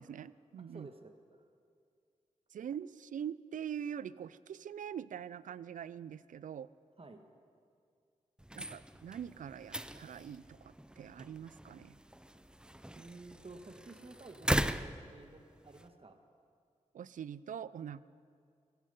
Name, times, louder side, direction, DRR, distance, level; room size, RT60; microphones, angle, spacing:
voice 1, 0.0-0.9 2.5-6.7 8.6-12.0 16.9-18.0, right 8 dB, 80° right, 18 dB, 0.4 m, -43 dB
voice 2, 0.6-1.5 7.0-7.2 12.9-16.2, right 3 dB, 45° right, 6 dB, 1.6 m, -52 dB
sound 1, 8.4-15.9, right 1 dB, 5° right, 0.5 m, -39 dB
17.0 x 15.0 x 5.4 m, 2.3 s
cardioid pair, 55°, 13 cm